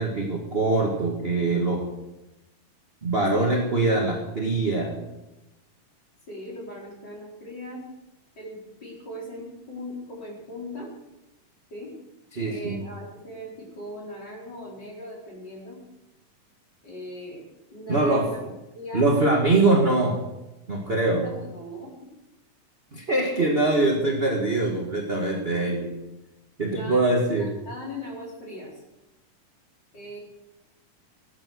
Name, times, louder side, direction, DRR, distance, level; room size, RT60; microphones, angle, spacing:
voice 1, 0.0-1.8 3.0-5.0 12.3-12.8 17.9-18.2 18.9-20.1 20.7-21.3 22.9-25.9 26.6-27.5, right 2 dB, 25° right, -1 dB, 1.5 m, -23 dB
voice 2, 6.3-7.8 8.4-10.9 11.7-11.9 12.4-15.8 16.8-17.4 17.7-18.4 18.7-19.1 21.2-21.9 26.6-28.8 29.9-30.2, left 1 dB, 30° left, -3 dB, 4.9 m, -39 dB
19.0 x 9.6 x 6.5 m, 0.98 s
omnidirectional pair, 3.8 m